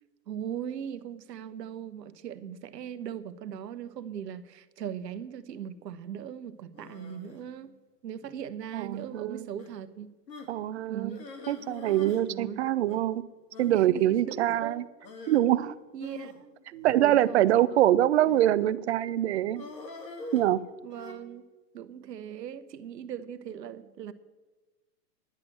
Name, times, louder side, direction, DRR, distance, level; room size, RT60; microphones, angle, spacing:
voice 1, 0.3-7.8 8.0-10.1 10.9-11.3 12.2-12.7 13.7-14.8 15.9-17.5 17.7-17.8 20.8-21.5 21.7-24.1, right 9 dB, 80° right, 13 dB, 1.0 m, -39 dB
sound 1, 6.7-7.4 8.2-8.5 8.9-9.1 9.6-9.7 10.3-10.6 11.1-12.2 12.5-12.6 12.9-13.0 13.5-13.7 15.0-15.4 16.0-17.4 18.2-18.6 19.5-21.1, left 3 dB, 85° left, 2.8 m, -45 dB
voice 2, 8.7-9.4 10.5-11.1 11.5-13.2 13.6-14.8 15.3-15.7 16.8-19.7 20.3-20.6, right 13 dB, 45° right, 16 dB, 0.5 m, -24 dB
10.5 x 7.6 x 9.1 m, 1.2 s
hypercardioid pair, 150°, 49 cm